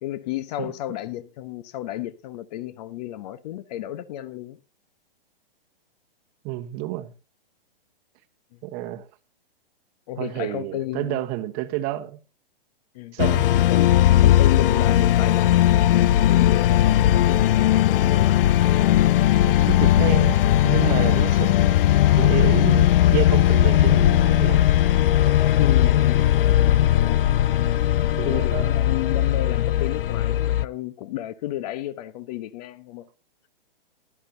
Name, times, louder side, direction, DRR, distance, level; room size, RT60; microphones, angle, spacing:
voice 1, 0.0-4.6 8.5-8.6 10.1-11.2 12.9-13.2 13.7-18.4 25.6-26.6 28.2-33.1, left 14 dB, 40° left, 1.1 m, -32 dB
voice 2, 6.4-7.1 8.6-9.1 10.2-12.2 13.1-13.5 19.4-21.8 22.1-24.7 28.2-28.8, right 15 dB, 30° right, 1.2 m, -29 dB
sound 1, 13.2-30.6, left 12 dB, 65° left, 0.5 m, -18 dB
17.0 x 12.5 x 2.8 m
hypercardioid pair, 140°, 30 cm